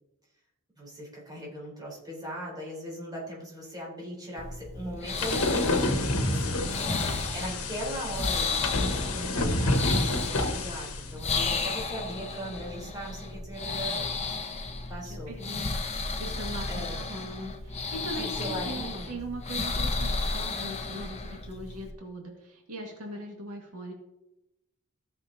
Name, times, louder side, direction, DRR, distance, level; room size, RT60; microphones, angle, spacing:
voice 1, 0.8-6.7 7.3-14.0 14.9-15.3 16.7-17.0 18.2-19.1, equal, 20° right, -4 dB, 4.0 m, -39 dB
sound 1, 4.4-21.9, left 3 dB, 30° left, 0.9 m, -33 dB
sound 2, 5.2-11.1, left 2 dB, 70° left, 1.4 m, -28 dB
voice 2, 6.7-7.1 15.0-23.9, right 1 dB, 80° right, 0 dB, 2.0 m, -40 dB
16.0 x 6.7 x 2.8 m, 0.92 s
head